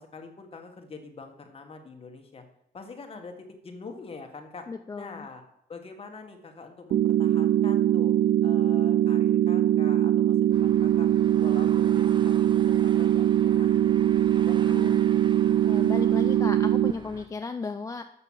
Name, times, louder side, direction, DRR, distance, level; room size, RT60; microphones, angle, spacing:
voice 1, 0.0-2.4 2.7-4.7 4.9-5.4 5.7-8.1 8.4-11.1 11.4-14.1 14.4-15.1, left 4 dB, 35° left, 4 dB, 1.3 m, -45 dB
voice 2, 4.7-5.3 14.7-15.0 15.6-18.0, left 4 dB, 20° left, 8 dB, 0.3 m, -35 dB
sound 1, 6.9-16.9, right 11 dB, 70° right, 0.4 m, -22 dB
sound 2, 10.5-17.3, right 4 dB, 30° right, 0.6 m, -44 dB
6.8 x 5.8 x 7.0 m, 0.79 s
wide cardioid pair, 145°, 17 cm